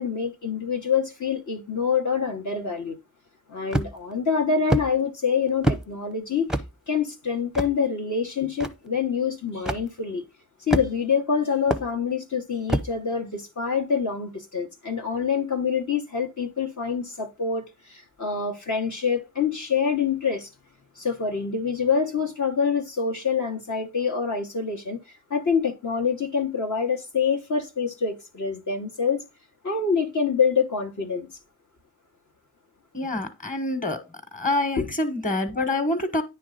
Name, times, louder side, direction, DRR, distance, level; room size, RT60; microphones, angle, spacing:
voice 1, 0.0-3.0 3.5-6.5 6.9-10.2 10.6-20.5 21.0-25.0 25.3-29.2 29.6-31.3 34.8-34.9, left 6 dB, 50° left, 1.1 m, -26 dB
sound 1, 3.7-4.1 4.7-4.9 5.6-5.8 6.5-6.7 7.6-7.7 8.6-8.7 9.7-9.8 10.7-11.1 11.7-11.9 12.7-12.9, right 1 dB, ahead, 0.7 m, -24 dB
voice 2, 32.9-34.0 34.3-36.2, left 2 dB, 20° left, 1.4 m, -26 dB
9.5 x 3.2 x 3.8 m
cardioid pair, 50°, 39 cm